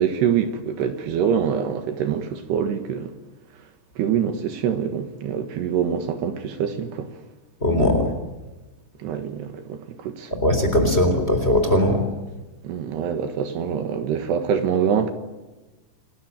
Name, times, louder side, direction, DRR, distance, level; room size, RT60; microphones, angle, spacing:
voice 1, 0.0-3.1 4.0-7.1 9.0-10.3 12.6-15.1, right 8 dB, 70° right, 3.5 m, -25 dB
voice 2, 7.6-8.1 10.4-12.1, left 1 dB, 15° left, 3.6 m, -19 dB
28.5 x 20.0 x 9.0 m
omnidirectional pair, 5.1 m